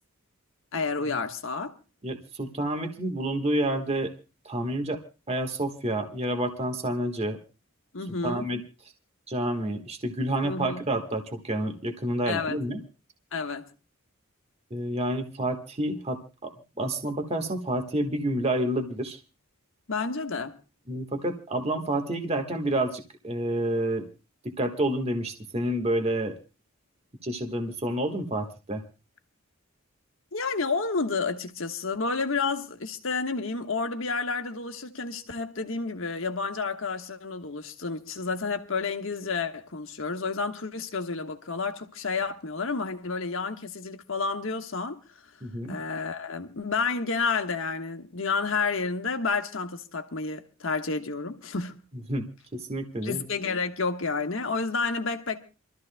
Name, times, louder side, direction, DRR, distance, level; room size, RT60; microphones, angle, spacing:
voice 1, 0.7-1.7 7.9-8.5 10.4-10.8 12.3-12.6 13.3-13.7 19.9-20.6 30.3-45.0 45.7-51.8 53.0-55.4, left 4 dB, 65° left, 1.3 m, -30 dB
voice 2, 2.0-4.1 4.4-5.0 5.3-7.4 8.2-8.6 9.3-12.8 14.7-16.5 16.8-19.2 20.9-24.1 24.4-26.3 27.2-28.8 45.4-45.8 52.1-52.2 52.5-53.2, right 1 dB, 30° right, 1.5 m, -29 dB
28.0 x 13.5 x 2.2 m
head